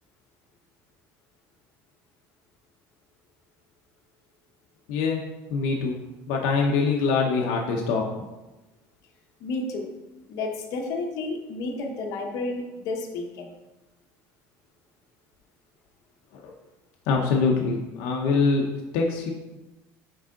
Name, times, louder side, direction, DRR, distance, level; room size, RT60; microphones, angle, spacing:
voice 1, 4.9-5.2 5.5-6.0 6.3-8.1 16.3-16.5 17.1-19.3, left 4 dB, 80° left, 0 dB, 0.8 m, -24 dB
voice 2, 9.4-9.9 10.3-13.6, left 3 dB, 55° left, 2 dB, 1.0 m, -31 dB
6.2 x 4.8 x 3.8 m, 1.1 s
cardioid pair, 160°, 7 cm